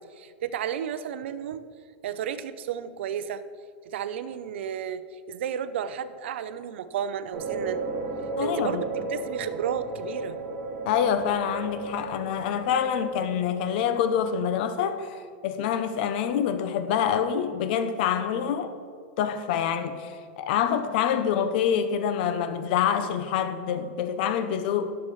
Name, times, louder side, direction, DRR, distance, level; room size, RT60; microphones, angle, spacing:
voice 1, 0.0-1.7 2.0-3.4 3.8-7.8 8.4-10.4, right 9 dB, 75° right, 0.6 m, -33 dB
sound 1, 7.3-14.8, right 2 dB, 40° right, 2.2 m, -35 dB
voice 2, 8.4-8.8 10.9-18.7 19.2-25.0, left 8 dB, 50° left, 0.6 m, -26 dB
18.0 x 7.0 x 3.2 m
supercardioid pair, 155°, 6 cm